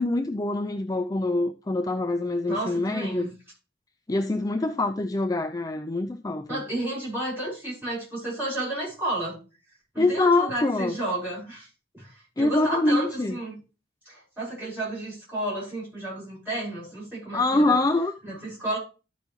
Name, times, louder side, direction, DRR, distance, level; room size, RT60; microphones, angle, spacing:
voice 1, 0.0-3.3 4.1-6.6 10.0-10.9 12.4-13.4 17.3-18.1, left 2 dB, 20° left, 0.4 m, -25 dB
voice 2, 2.4-3.3 6.5-9.4 9.9-11.7 11.9-13.6 14.1-17.8 18.2-18.8, right 1 dB, 10° right, 6.1 m, -32 dB
14.0 x 5.4 x 3.1 m
head